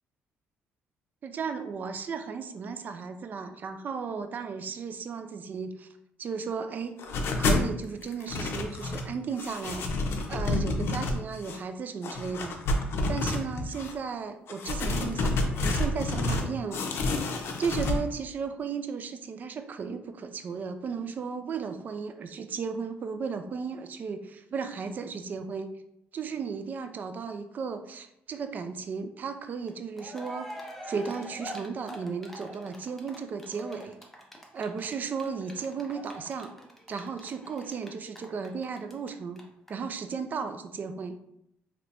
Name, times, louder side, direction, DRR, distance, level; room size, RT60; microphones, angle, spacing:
voice 1, 1.2-5.9 6.2-7.0 7.4-12.6 13.1-17.1 17.6-25.7 26.1-30.5 30.9-34.0 34.5-36.5 36.9-39.4 39.7-41.2, right 5 dB, 45° right, 8 dB, 0.3 m, -35 dB
sound 1, 7.0-7.7 8.0-9.1 9.4-11.6 12.0-13.9 14.5-16.5 16.7-18.0, left 2 dB, 65° left, 0.5 m, -29 dB
Cheering, 29.7-29.8 30.0-39.1 39.4-39.5 39.7-39.8, equal, 5° left, 0.6 m, -44 dB
3.3 x 2.9 x 2.5 m, 0.77 s
cardioid pair, 105°, 4 cm